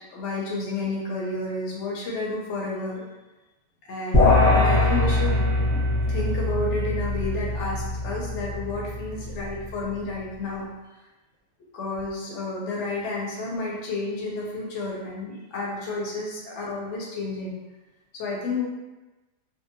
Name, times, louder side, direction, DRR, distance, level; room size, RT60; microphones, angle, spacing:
voice 1, 0.1-3.0 3.8-10.6 11.7-17.6 18.1-18.6, left 2 dB, 65° left, -3 dB, 0.9 m, -31 dB
sound 1, 4.1-9.6, left 2 dB, 15° left, 0.8 m, -22 dB
2.7 x 2.1 x 2.6 m, 1.1 s
omnidirectional pair, 1.5 m